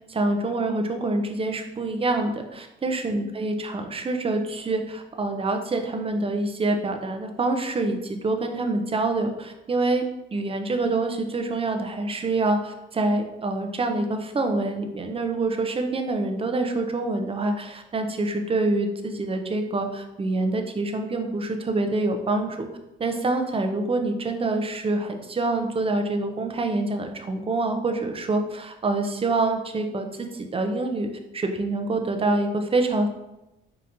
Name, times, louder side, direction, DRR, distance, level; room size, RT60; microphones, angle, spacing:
voice 1, 0.1-10.0 10.3-22.7 23.0-31.1 31.3-33.1, right 2 dB, 30° right, 5 dB, 0.5 m, -26 dB
4.9 x 2.8 x 2.7 m, 0.94 s
cardioid pair, 90°, 20 cm